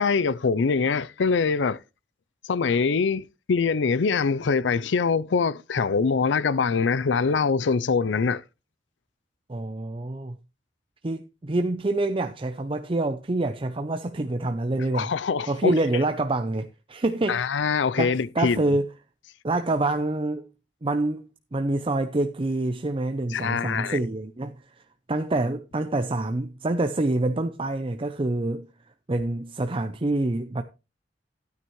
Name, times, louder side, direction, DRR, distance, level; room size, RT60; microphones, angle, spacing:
voice 1, 0.0-1.8 2.4-8.4 14.9-15.7 17.3-18.8 23.3-24.0, left 5 dB, 75° left, 0.5 m, -24 dB
voice 2, 9.5-10.3 11.0-15.1 15.5-17.4 18.0-18.9 19.4-20.5 20.8-24.5 25.1-28.7 29.1-30.6, right 2 dB, 30° right, 0.6 m, -26 dB
12.0 x 9.4 x 3.1 m
head